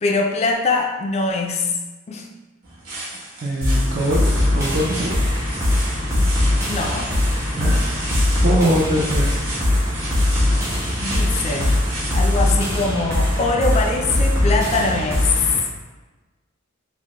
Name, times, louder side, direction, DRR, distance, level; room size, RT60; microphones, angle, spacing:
voice 1, 0.0-1.7 2.1-2.3 6.7-7.2 11.0-11.8 12.1-15.3, left 3 dB, 30° left, 2 dB, 0.3 m, -23 dB
sound 1, 2.6-12.5, right 1 dB, 70° right, 0.9 m, -34 dB
voice 2, 3.4-5.1 6.1-6.2 7.6-7.7 8.1-9.4, right 1 dB, 45° right, -3 dB, 0.5 m, -22 dB
sound 2, 3.6-15.6, left 1 dB, 15° right, 0.9 m, -21 dB
3.4 x 2.1 x 2.9 m, 1.2 s
head